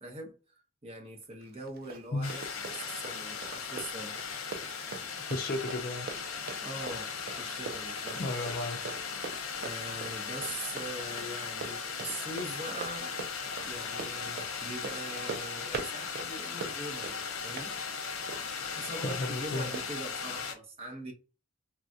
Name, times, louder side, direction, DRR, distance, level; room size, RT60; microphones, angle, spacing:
voice 1, 0.0-4.2 6.6-7.1 7.4-8.2 9.6-13.2 13.6-17.7 18.8-21.1, right 1 dB, 30° right, 0.8 m, -42 dB
Run, 1.4-19.2 19.7-19.9, right 4 dB, 45° right, 0.4 m, -43 dB
sound 1, 2.2-20.5, left 6 dB, 85° left, 0.7 m, -38 dB
voice 2, 5.3-6.1 8.2-9.0 18.9-19.7, left 2 dB, 45° left, 0.4 m, -34 dB
3.1 x 2.3 x 2.6 m
head